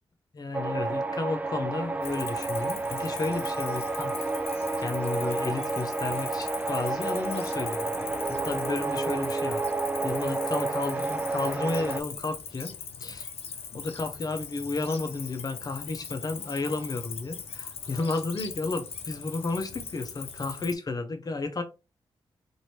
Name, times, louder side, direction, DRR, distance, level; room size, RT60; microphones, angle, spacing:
voice 1, 0.3-4.1 4.8-8.0 8.3-9.6 10.0-12.7 13.0-13.3 13.7-21.6, left 3 dB, 40° left, 0.8 m, -32 dB
sound 1, 0.5-12.0, right 3 dB, 15° right, 0.4 m, -30 dB
Cricket, 2.0-20.7, left 6 dB, 80° left, 0.6 m, -40 dB
2.9 x 2.7 x 3.0 m
cardioid pair, 75°, 10 cm